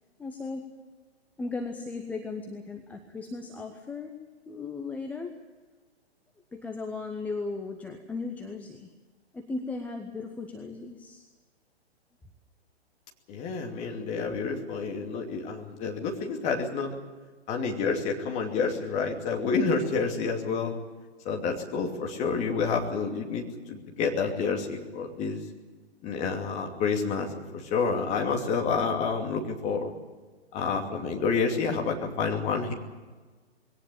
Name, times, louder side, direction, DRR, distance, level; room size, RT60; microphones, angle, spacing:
voice 1, 0.2-0.7 1.4-4.1 4.5-5.3 6.5-8.9 9.3-11.2, left 3 dB, 5° left, 3 dB, 0.9 m, -36 dB
voice 2, 13.3-16.9 17.5-20.7 21.2-25.4 26.0-29.9 30.5-32.7, left 5 dB, 20° left, 2 dB, 2.7 m, -29 dB
21.0 x 17.5 x 8.7 m, 1.3 s
figure-of-eight pair, 125°, 33 cm